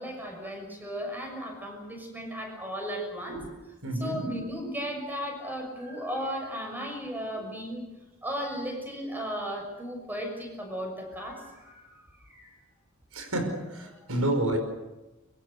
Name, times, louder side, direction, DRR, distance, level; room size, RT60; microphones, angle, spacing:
voice 1, 0.0-3.4 4.0-7.8 8.2-11.9 12.2-12.6 13.9-14.1, equal, 10° right, 2 dB, 6.4 m, -35 dB
voice 2, 3.8-4.3 13.1-14.6, right 1 dB, 90° right, 6 dB, 5.3 m, -29 dB
25.0 x 23.5 x 6.7 m, 1.1 s
head